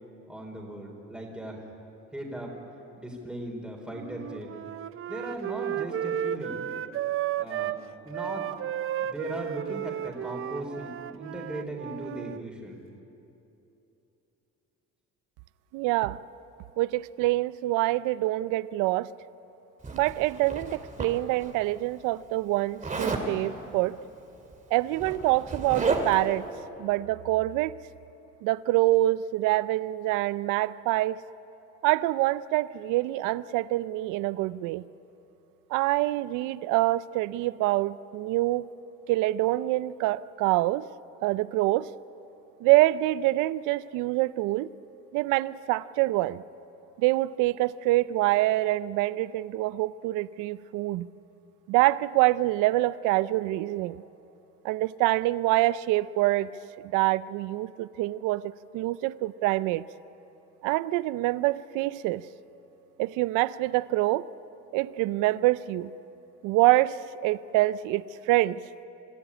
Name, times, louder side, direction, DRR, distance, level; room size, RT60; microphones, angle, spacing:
voice 1, 0.3-1.6 2.1-2.5 3.0-4.5 5.1-6.6 7.4-7.8 8.0-8.5 9.0-12.8, right 1 dB, 5° right, 0 dB, 4.2 m, -38 dB
Wind instrument woodwind instrument, 3.9-7.8 8.1-12.4, right 11 dB, 45° right, 0.6 m, -33 dB
voice 2, 15.7-16.2 16.8-19.1 19.9-24.0 24.7-26.4 26.8-27.7 28.4-31.2 31.8-34.8 35.7-38.7 39.1-40.9 41.2-41.9 42.6-44.7 45.1-46.4 47.0-51.1 51.7-54.0 54.6-56.5 56.8-59.8 60.6-62.3 63.0-64.3 64.7-65.9 66.4-68.6, right 17 dB, 90° right, 18 dB, 0.5 m, -25 dB
Zipper (clothing), 19.8-21.5 22.8-23.3 24.4-24.5 24.8-26.3, right 3 dB, 25° right, 2.6 m, -32 dB
25.5 x 13.5 x 10.0 m, 3.0 s
cardioid pair, 105°, 30 cm